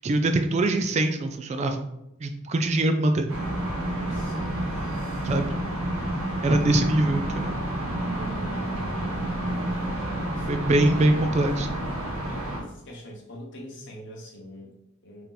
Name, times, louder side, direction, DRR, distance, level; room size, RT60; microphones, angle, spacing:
voice 1, 0.0-1.9 2.2-3.3 5.2-5.6 6.4-7.6 10.5-11.8, right 2 dB, 30° right, 7 dB, 0.3 m, -23 dB
sound 1, 3.3-12.6, right 1 dB, 75° right, 1.2 m, -29 dB
voice 2, 3.9-5.0 8.1-8.6 10.3-11.2 12.2-15.2, equal, 55° left, 0 dB, 1.0 m, -45 dB
3.4 x 2.8 x 3.9 m, 0.84 s
head